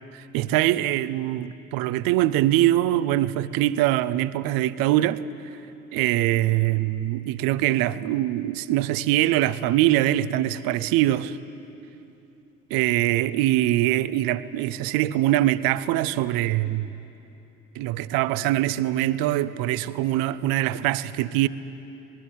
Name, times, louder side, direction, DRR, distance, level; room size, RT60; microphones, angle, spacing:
voice 1, 0.3-5.2 5.9-11.4 12.7-16.9 17.7-21.5, right 14 dB, 60° right, 0.9 m, -23 dB
24.5 x 20.0 x 8.6 m
figure-of-eight pair, 55°, 39 cm